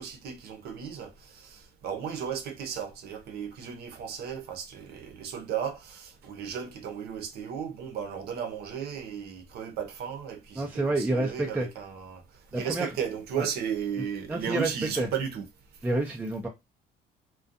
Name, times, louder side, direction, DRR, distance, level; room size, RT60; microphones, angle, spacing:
voice 1, 0.0-12.2 12.5-15.4, right 7 dB, 70° right, 0.7 m, -35 dB
voice 2, 10.6-11.7 12.5-12.9 13.4-13.5 14.3-14.7 15.0-15.1 15.8-16.5, right 2 dB, 10° right, 0.4 m, -28 dB
2.5 x 2.2 x 2.5 m
cardioid pair, 110°, 17 cm